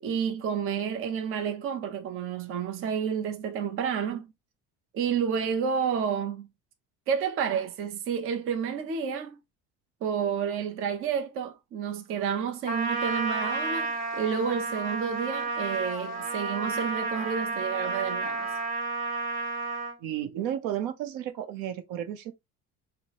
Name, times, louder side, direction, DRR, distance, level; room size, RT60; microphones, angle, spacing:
voice 1, 0.0-4.3 4.9-6.5 7.1-9.4 10.0-18.5, right 7 dB, 40° right, 0.6 m, -30 dB
Trumpet, 12.6-20.0, right 3 dB, 25° right, 2.6 m, -31 dB
voice 2, 20.0-22.3, right 11 dB, 75° right, 0.8 m, -33 dB
4.5 x 2.1 x 2.8 m
cardioid pair, 140°, 33 cm